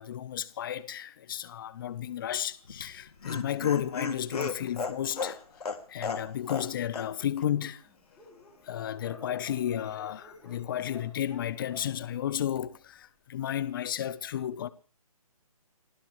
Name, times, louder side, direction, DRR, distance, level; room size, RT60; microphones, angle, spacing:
voice 1, 0.0-5.4 5.9-7.8 8.6-14.7, left 10 dB, 35° left, 1.0 m, -33 dB
Dog, 2.3-5.3 6.0-6.1 6.3-6.4 6.6-13.0, left 2 dB, ahead, 3.4 m, -54 dB
Laughter, 2.6-6.7 6.9-7.1 7.4-7.5, left 4 dB, 85° left, 2.7 m, -34 dB
28.5 x 14.5 x 3.3 m
hypercardioid pair, 160°, 19 cm